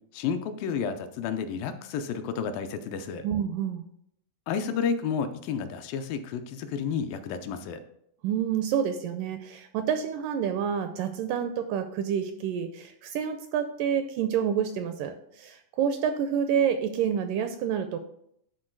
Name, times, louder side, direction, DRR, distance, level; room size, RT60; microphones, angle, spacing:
voice 1, 0.1-3.3 4.5-7.8, left 6 dB, 80° left, 8 dB, 2.2 m, -31 dB
voice 2, 3.2-3.9 8.2-18.0, right 8 dB, 80° right, 8 dB, 1.9 m, -28 dB
11.0 x 3.9 x 4.5 m, 0.72 s
omnidirectional pair, 4.2 m